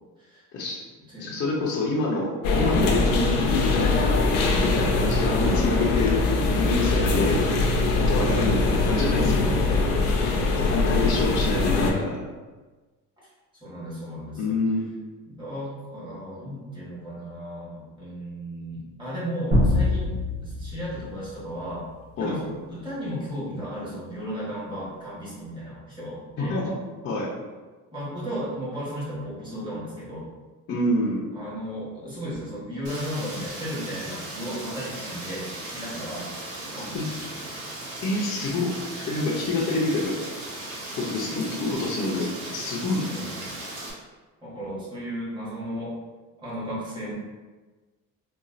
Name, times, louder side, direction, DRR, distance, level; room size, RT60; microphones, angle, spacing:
voice 1, 1.2-4.2 4.6-6.2 6.6-7.5 8.1-9.5 10.7-12.0 14.4-14.9 22.2-22.3 26.4-26.7 27.0-27.3 30.7-31.2 36.9-37.1 38.0-38.8 39.1-40.1 40.9-43.1, left 2 dB, 40° left, -6 dB, 0.6 m, -27 dB
sound 1, 2.4-11.9, left 3 dB, 80° left, 0.6 m, -22 dB
voice 2, 10.4-11.3 13.2-14.6 15.3-20.1 20.4-21.9 22.2-26.5 27.9-30.3 31.3-36.3 36.6-37.5 41.3-41.8 43.1-43.4 44.4-46.0 46.4-47.2, equal, 15° right, -10 dB, 1.3 m, -35 dB
sound 2, 19.5-22.1, left 1 dB, 30° right, 1.2 m, -25 dB
Rain, 32.8-43.9, right 2 dB, 80° right, 1.0 m, -37 dB
4.0 x 2.3 x 2.5 m, 1.3 s
cardioid pair, 165°, 34 cm